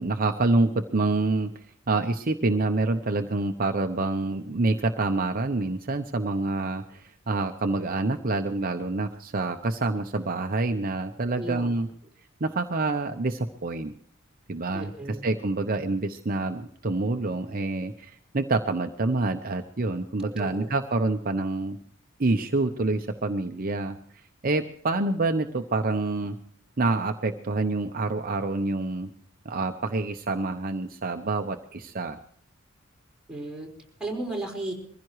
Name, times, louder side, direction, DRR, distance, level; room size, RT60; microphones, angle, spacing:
voice 1, 0.0-11.9 12.4-13.9 14.5-21.8 22.2-26.4 26.8-29.1 29.4-32.2, right 2 dB, 45° right, 6 dB, 0.8 m, -27 dB
voice 2, 11.4-11.8 14.7-15.3 20.2-20.8 33.3-33.7 34.0-34.7, right 2 dB, 5° right, -1 dB, 4.8 m, -34 dB
23.5 x 15.5 x 3.1 m, 0.63 s
head